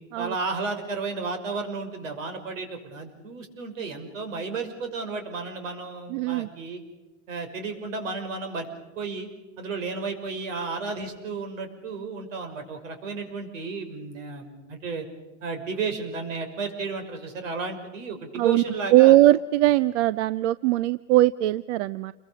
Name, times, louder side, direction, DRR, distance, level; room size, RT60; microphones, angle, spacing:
voice 1, 0.2-6.8 7.3-8.7 9.0-9.3 9.6-15.1 15.4-19.2, right 4 dB, 85° right, 6 dB, 6.1 m, -33 dB
voice 2, 6.1-6.5 18.3-18.6 18.9-22.1, right 15 dB, 65° right, 17 dB, 0.7 m, -20 dB
29.0 x 23.0 x 6.5 m, 1.1 s
supercardioid pair, 135°, 37 cm